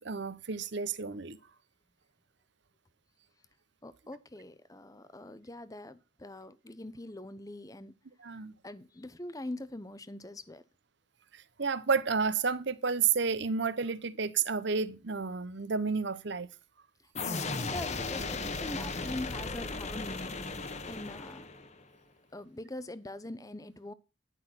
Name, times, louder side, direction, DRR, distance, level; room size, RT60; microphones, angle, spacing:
voice 1, 0.0-1.4 8.2-8.5 11.6-16.5, right 5 dB, 60° right, 0.8 m, -31 dB
voice 2, 3.8-7.9 8.3-10.6 17.2-21.5 22.3-23.9, left 1 dB, 15° left, 0.7 m, -43 dB
sound 1, 17.1-21.8, left 3 dB, 35° left, 1.1 m, -36 dB
11.0 x 5.9 x 6.1 m
head